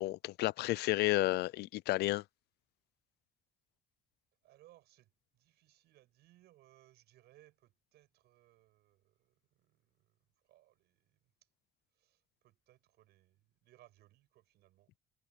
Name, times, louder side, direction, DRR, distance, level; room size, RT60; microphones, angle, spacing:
voice 1, 0.0-2.2, left 18 dB, 75° left, 0.6 m, -31 dB
voice 2, 4.4-11.3 11.9-15.0, right 15 dB, 80° right, 7.4 m, -66 dB
cardioid pair, 110°, 17 cm